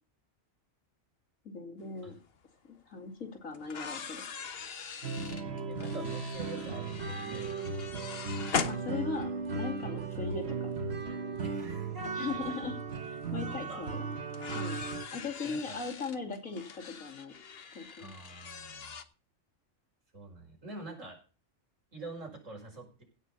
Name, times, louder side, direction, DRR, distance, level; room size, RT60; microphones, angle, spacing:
voice 1, 1.4-2.2 2.8-4.3 8.6-10.7 12.1-12.7 13.0-14.0 14.5-14.8 15.1-17.3 17.7-18.1, left 4 dB, 85° left, 3 dB, 3.1 m, -39 dB
sound 1, 2.3-2.4 3.5-9.5 10.8-10.9 12.7-12.8 13.1-13.2 14.3-19.0, left 6 dB, 50° left, 1.2 m, -41 dB
sound 2, 5.0-15.1, right 4 dB, 55° right, 1.4 m, -36 dB
voice 2, 5.7-7.5 11.4-12.2 12.4-12.6 13.4-13.9 15.1-15.8 18.0-18.9 20.1-21.2 21.9-23.0, right 2 dB, 70° right, 1 dB, 5.6 m, -46 dB
16.5 x 6.3 x 5.5 m, 0.36 s
omnidirectional pair, 1.4 m